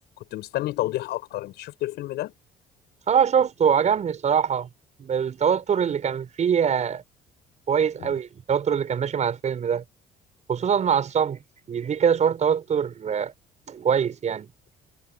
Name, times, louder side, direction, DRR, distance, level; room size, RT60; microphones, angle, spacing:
voice 1, 0.3-2.3 8.0-8.1, left 16 dB, 80° left, 7.4 m, -30 dB
voice 2, 3.1-4.7 5.0-7.0 7.7-9.8 10.5-11.4 11.7-13.3 13.7-14.5, right 7 dB, 45° right, 6.5 m, -23 dB
cardioid pair, 110°, 17 cm